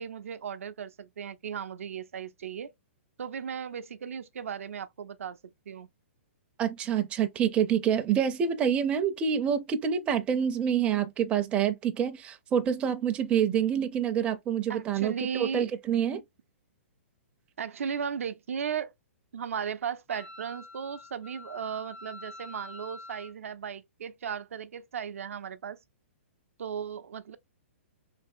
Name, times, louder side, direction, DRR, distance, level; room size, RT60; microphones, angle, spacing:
voice 1, 0.0-2.7 3.2-5.4 5.7-5.9 14.7-15.7 17.6-18.9 19.3-25.8 26.6-27.4, right 7 dB, 85° right, 0.5 m, -36 dB
voice 2, 6.6-16.2, right 8 dB, 15° right, 0.4 m, -27 dB
Wind instrument woodwind instrument, 20.1-23.3, left 3 dB, 85° left, 0.8 m, -47 dB
3.3 x 2.8 x 2.5 m
hypercardioid pair, 155°, 7 cm